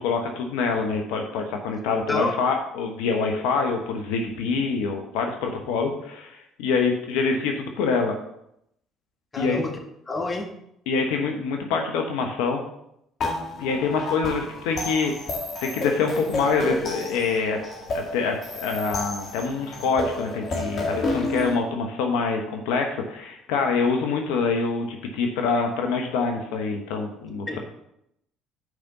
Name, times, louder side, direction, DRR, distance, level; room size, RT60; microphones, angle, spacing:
voice 1, 0.0-8.2 9.4-9.6 10.9-12.6 13.6-15.1 15.6-17.6 17.9-27.6, left 4 dB, 75° left, 3 dB, 0.9 m, -25 dB
voice 2, 9.3-9.7 10.1-10.4 27.5-27.6, left 2 dB, 25° left, 3 dB, 1.7 m, -27 dB
sound 1, 13.2-21.5, left 2 dB, 50° left, 2.0 m, -30 dB
6.5 x 5.1 x 6.5 m, 0.77 s
hypercardioid pair, 60°, 0 cm